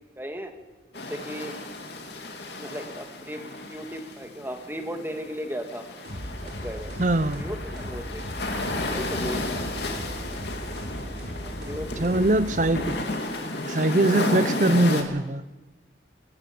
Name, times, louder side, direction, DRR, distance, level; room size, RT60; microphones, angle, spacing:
voice 1, 0.2-0.5 0.9-1.5 2.5-5.8 6.4-6.9 7.4-8.2 8.9-9.5 11.4-12.4, equal, 10° right, 2.0 m, -36 dB
sound 1, 0.9-15.0, left 2 dB, 65° left, 2.7 m, -33 dB
sound 2, 6.0-13.2, equal, 60° right, 5.3 m, -37 dB
voice 2, 7.0-7.4 12.0-13.0 13.7-15.4, right 2 dB, 45° right, 0.7 m, -22 dB
21.5 x 15.0 x 8.8 m
head